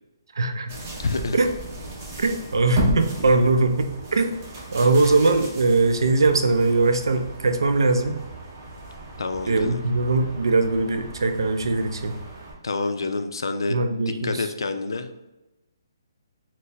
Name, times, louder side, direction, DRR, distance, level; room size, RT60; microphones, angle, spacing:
voice 1, 0.4-0.8 1.3-1.5 2.2-4.4 4.7-8.2 9.5-12.2 13.7-14.4, right 3 dB, 85° right, 7 dB, 0.4 m, -21 dB
sound 1, 0.7-12.5, right 2 dB, 25° right, 0.6 m, -35 dB
voice 2, 1.0-1.4 9.2-9.8 12.6-13.8 14.1-15.3, left 3 dB, 85° left, 8 dB, 0.4 m, -28 dB
4.3 x 2.0 x 3.3 m, 1.0 s
hypercardioid pair, 175°, 2 cm